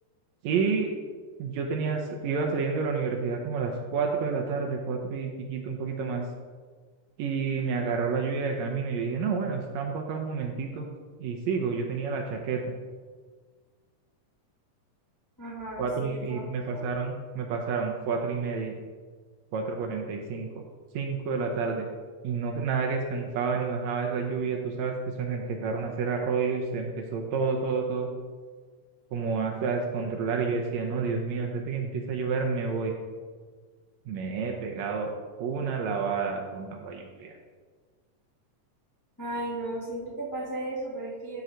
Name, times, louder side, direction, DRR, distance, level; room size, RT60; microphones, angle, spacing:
voice 1, 0.4-0.9 1.4-6.3 7.2-10.9 11.2-12.7 15.8-18.7 19.5-20.6 20.9-21.9 22.2-28.1 29.1-32.9 34.1-35.1 35.4-37.4, right 5 dB, 75° right, 2 dB, 1.8 m, -29 dB
voice 2, 15.4-16.4 16.7-16.9 39.2-41.4, right 1 dB, 30° left, -6 dB, 0.3 m, -35 dB
11.0 x 3.9 x 4.5 m, 1.5 s
omnidirectional pair, 3.6 m